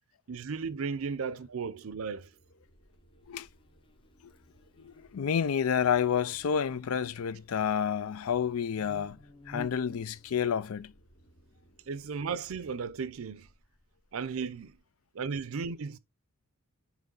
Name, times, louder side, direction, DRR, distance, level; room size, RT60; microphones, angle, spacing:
voice 1, 0.3-2.3 11.9-13.5 14.1-14.7 15.1-16.0, right 5 dB, 75° right, 0.5 m, -35 dB
sound 1, 0.9-13.3, right 1 dB, 70° left, 3.6 m, -64 dB
Buzz, 2.6-14.8, left 1 dB, 25° left, 0.6 m, -55 dB
voice 2, 4.8-9.2 9.5-10.9, left 7 dB, 85° left, 0.4 m, -29 dB
9.0 x 3.1 x 3.8 m
head